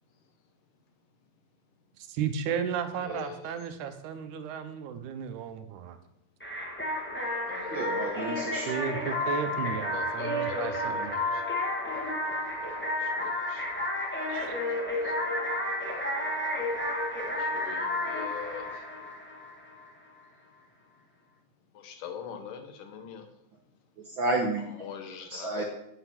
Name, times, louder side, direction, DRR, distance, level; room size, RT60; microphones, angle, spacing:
voice 1, 2.0-6.0 8.6-11.2 14.3-14.6, right 7 dB, 80° right, 9 dB, 2.3 m, -34 dB
voice 2, 3.0-3.5 7.5-7.9 9.9-11.4 13.0-13.7 14.3-14.4 15.0-15.1 17.4-18.8 21.7-23.3 24.7-25.6, left 7 dB, 85° left, 6 dB, 2.9 m, -42 dB
sound 1, 6.4-19.9, left 1 dB, 10° left, 0.5 m, -31 dB
voice 3, 7.7-8.9 24.2-24.6 25.3-25.6, right 2 dB, 60° right, 2 dB, 1.3 m, -30 dB
9.1 x 8.0 x 5.9 m, 0.81 s
omnidirectional pair, 3.6 m